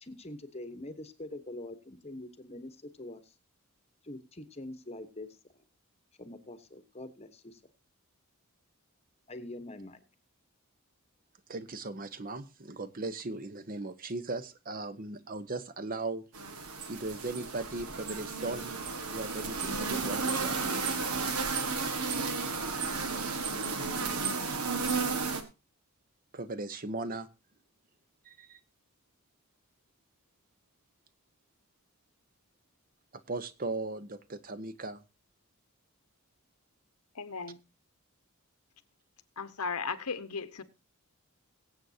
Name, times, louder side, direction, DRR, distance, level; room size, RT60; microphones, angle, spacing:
voice 1, 0.0-3.3 4.0-5.3 6.2-7.6 9.3-10.0, left 1 dB, 30° left, 1.0 m, -44 dB
voice 2, 11.5-16.2 16.9-18.7 19.1-20.8 26.3-27.3 28.2-28.6 33.3-35.0, right 2 dB, 40° right, 0.8 m, -38 dB
sound 1, 16.3-25.4, right 4 dB, 85° right, 1.6 m, -33 dB
voice 3, 37.1-37.6 39.4-40.6, left 5 dB, 90° left, 1.1 m, -36 dB
22.5 x 7.9 x 2.7 m
head